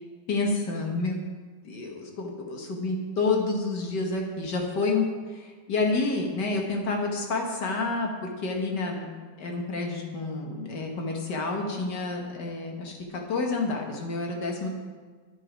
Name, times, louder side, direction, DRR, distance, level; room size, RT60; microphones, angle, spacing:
voice 1, 0.3-1.2 1.7-8.1 8.4-9.1 9.4-12.9 13.3-14.7, left 3 dB, 70° left, 1 dB, 2.0 m, -29 dB
10.5 x 7.7 x 5.1 m, 1.5 s
omnidirectional pair, 2.0 m